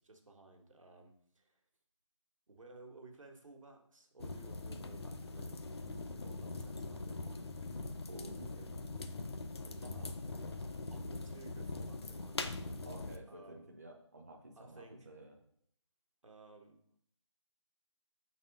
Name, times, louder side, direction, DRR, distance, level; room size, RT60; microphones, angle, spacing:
voice 1, 0.0-1.6 2.5-5.6 6.0-7.8 8.1-8.8 9.6-12.8 13.3-13.7 14.5-15.1 16.2-16.8, right 3 dB, 80° right, 3 dB, 1.3 m, -57 dB
sound 1, 4.2-13.2, left 3 dB, 55° left, 0.5 m, -42 dB
voice 2, 8.1-8.7 9.8-10.2 12.8-15.4, right 1 dB, 30° right, 1 dB, 0.5 m, -52 dB
4.6 x 4.1 x 5.2 m, 0.66 s
figure-of-eight pair, 175°, 16 cm